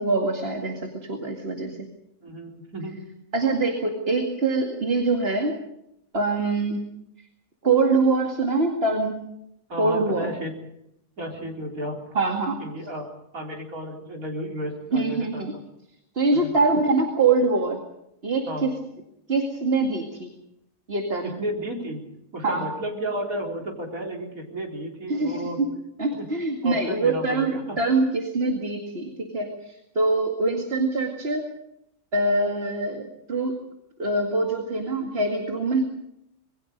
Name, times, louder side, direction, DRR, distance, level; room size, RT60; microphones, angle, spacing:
voice 1, 0.0-1.8 3.3-5.5 6.1-6.8 7.6-9.3 9.8-10.3 12.1-12.6 14.9-15.5 16.2-17.8 18.2-18.7 19.3-20.3 20.9-21.4 22.4-22.7 25.1-25.7 26.0-31.4 32.1-33.5 34.0-35.9, right 3 dB, 45° right, 2 dB, 2.4 m, -24 dB
voice 2, 2.2-3.0 9.7-10.5 11.2-12.2 12.6-13.0 13.3-15.5 16.3-16.5 18.5-18.7 21.2-22.0 22.3-25.6 26.1-26.3 26.6-27.8, equal, 75° right, 0 dB, 4.5 m, -33 dB
27.0 x 22.0 x 5.3 m, 0.81 s
omnidirectional pair, 1.5 m